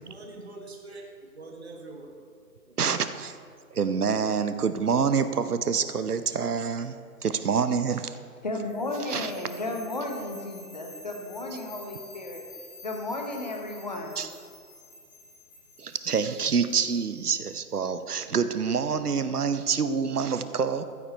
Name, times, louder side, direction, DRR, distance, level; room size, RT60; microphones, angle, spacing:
voice 1, 0.0-2.1 2.7-2.9, right 2 dB, 40° right, 1 dB, 1.6 m, -44 dB
voice 2, 2.8-3.4 3.7-7.0 7.2-8.1 9.1-9.3 14.2-14.3 15.8-20.8, right 6 dB, 70° right, 11 dB, 0.8 m, -26 dB
voice 3, 8.4-12.4 12.8-14.1, left 2 dB, 25° left, 2 dB, 1.0 m, -34 dB
sound 1, 8.7-17.7, left 1 dB, 5° left, 1.8 m, -49 dB
14.0 x 7.8 x 4.4 m, 2.2 s
figure-of-eight pair, 160°, 48 cm